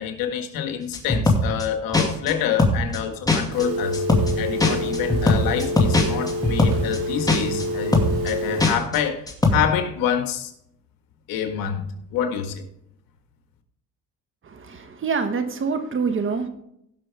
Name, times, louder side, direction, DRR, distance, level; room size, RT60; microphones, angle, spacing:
voice 1, 0.0-4.0 4.4-8.0 8.2-10.5 11.3-12.7, left 8 dB, 75° left, 1.6 m, -27 dB
sound 1, 0.9-1.7 1.9-2.3 2.6-3.0 3.3-3.7 3.9-4.3 4.6-7.0 7.3-7.7 7.9-8.3 8.6-9.0 9.3-9.5, left 2 dB, 10° left, 2.1 m, -20 dB
Telephone, 3.5-8.7, left 1 dB, 90° right, 3.9 m, -28 dB
voice 2, 14.4-16.5, right 5 dB, 35° right, 1.5 m, -26 dB
17.0 x 6.0 x 3.5 m
cardioid pair, 105°, 34 cm